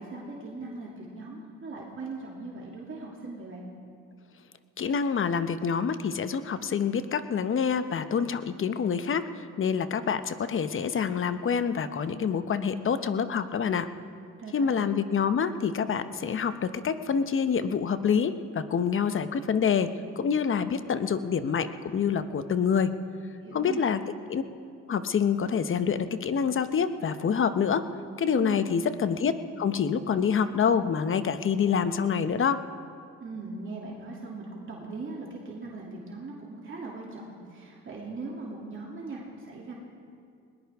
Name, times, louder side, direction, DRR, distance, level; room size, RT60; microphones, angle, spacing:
voice 1, 0.0-3.6 14.4-15.0 23.4-23.8 28.4-28.7 33.2-39.7, right 3 dB, 40° right, -4 dB, 2.7 m, -40 dB
voice 2, 4.8-9.2 9.6-13.9 14.5-19.9 20.2-22.9 23.5-24.0 24.3-24.4 24.9-27.8 28.2-32.6, left 6 dB, 45° left, 11 dB, 0.9 m, -26 dB
20.5 x 19.0 x 3.6 m, 2.3 s
cardioid pair, 90°, 30 cm